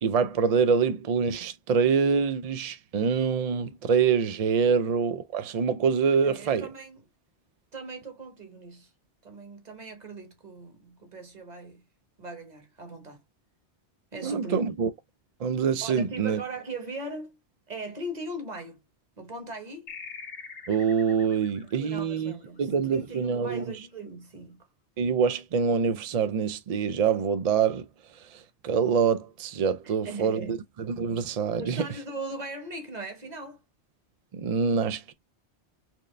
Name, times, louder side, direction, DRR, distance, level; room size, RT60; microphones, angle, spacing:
voice 1, 0.0-6.7 14.2-14.9 15.4-16.4 20.7-22.3 22.6-23.6 25.0-27.9 28.3-30.6 30.9-31.8 34.3-35.1, right 6 dB, 65° right, 0.3 m, -25 dB
voice 2, 6.2-7.0 7.7-8.9 9.2-11.8 12.2-13.2 14.1-14.7 15.8-17.4 17.7-18.8 19.2-19.9 21.6-24.7 29.8-30.6 31.6-33.6, right 2 dB, 40° right, 1.1 m, -39 dB
sound 1, 19.9-22.9, left 5 dB, 55° left, 1.2 m, -44 dB
4.3 x 2.5 x 3.1 m
omnidirectional pair, 1.2 m